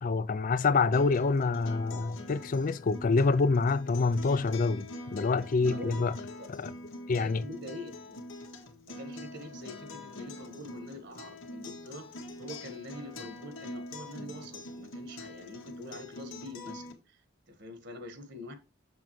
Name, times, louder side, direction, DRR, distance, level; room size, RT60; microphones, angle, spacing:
voice 1, 0.0-6.1 6.6-6.7 7.1-7.4, left 4 dB, 45° left, 0.4 m, -27 dB
Acoustic guitar, 0.9-16.9, left 2 dB, 85° left, 1.8 m, -44 dB
voice 2, 5.6-6.0 6.3-6.5 7.1-8.2 8.9-17.2 17.5-18.5, left 1 dB, 60° right, 1.5 m, -45 dB
7.2 x 7.0 x 3.1 m
head